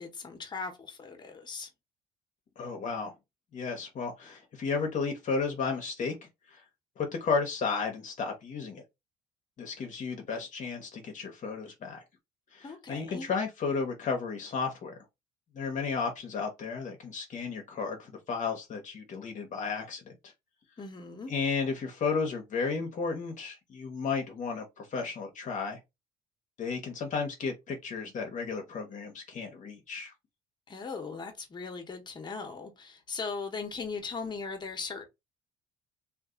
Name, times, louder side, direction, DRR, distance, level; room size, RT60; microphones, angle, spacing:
voice 1, 0.0-1.7 12.6-13.3 20.8-21.3 30.7-35.0, left 4 dB, 25° left, 1.1 m, -39 dB
voice 2, 2.6-3.1 3.5-6.6 7.0-8.8 9.6-12.0 12.5-15.0 15.5-20.3 21.3-25.8 26.6-30.1, left 5 dB, 45° left, 0.9 m, -33 dB
2.6 x 2.5 x 3.7 m
cardioid pair, 110°, 17 cm